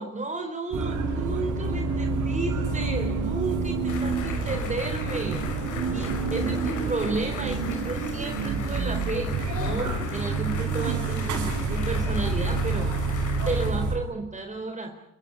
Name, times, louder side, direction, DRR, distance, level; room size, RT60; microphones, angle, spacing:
voice 1, 0.0-12.9 13.4-14.9, right 3 dB, 25° right, 5 dB, 4.1 m, -33 dB
sound 1, 0.7-13.9, right 4 dB, 75° right, 7.9 m, -28 dB
sound 2, 3.9-13.7, left 7 dB, 80° left, 5.5 m, -39 dB
29.5 x 16.5 x 10.0 m, 0.75 s
cardioid pair, 90°, 30 cm